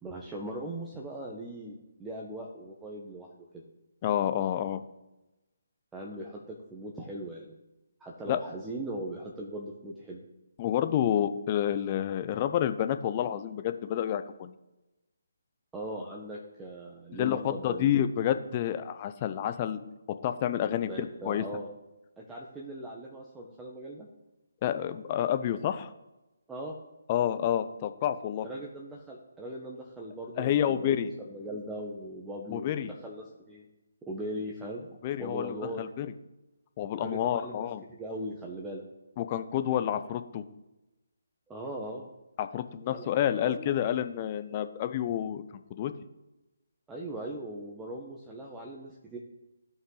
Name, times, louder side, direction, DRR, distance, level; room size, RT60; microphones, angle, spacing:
voice 1, 0.0-3.6 5.9-7.5 8.0-10.2 15.7-17.9 20.8-21.7 22.2-24.1 26.5-26.7 28.4-33.6 34.1-34.9 35.2-35.9 37.0-37.7 38.0-38.9 41.5-42.1 42.9-43.7 46.9-49.2, right 1 dB, 10° right, -2 dB, 1.1 m, -39 dB
voice 2, 4.0-4.8 8.3-8.4 10.6-14.5 17.1-19.8 20.2-21.4 24.6-25.9 27.1-28.5 30.4-31.1 32.5-32.9 35.0-36.1 36.8-37.8 39.2-40.4 42.4-45.4 45.8-45.9, left 10 dB, 30° left, 10 dB, 0.7 m, -29 dB
15.0 x 5.4 x 4.0 m, 1.0 s
figure-of-eight pair, 150°, 0 cm